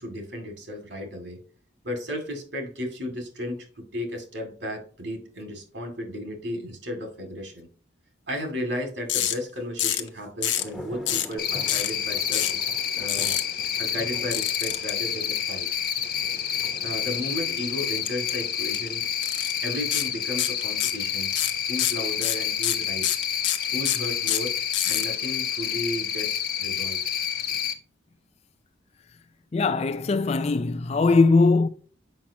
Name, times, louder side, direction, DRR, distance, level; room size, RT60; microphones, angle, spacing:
voice 1, 0.0-1.4 1.8-7.7 8.3-12.7 13.0-13.3 13.8-15.7 16.8-19.1 19.6-21.3 21.7-23.1 23.7-24.5 24.8-27.0, left 1 dB, 70° right, 2.3 m, -34 dB
sound 1, 9.1-9.3 9.8-10.1 10.4-10.7 11.1-11.3 11.7-11.9 12.3-12.6 13.1-13.4 14.3-14.9 18.0-18.3 18.6-18.8 19.2-19.5 19.9-20.1 20.4-21.0 21.3-25.0, left 12 dB, 75° left, 0.8 m, -26 dB
sound 2, 10.4-22.6, left 1 dB, ahead, 1.0 m, -47 dB
Cricket, 11.4-27.7, left 9 dB, 50° left, 0.9 m, -29 dB
voice 2, 29.5-31.7, left 3 dB, 35° left, 0.3 m, -20 dB
7.5 x 5.9 x 2.8 m
head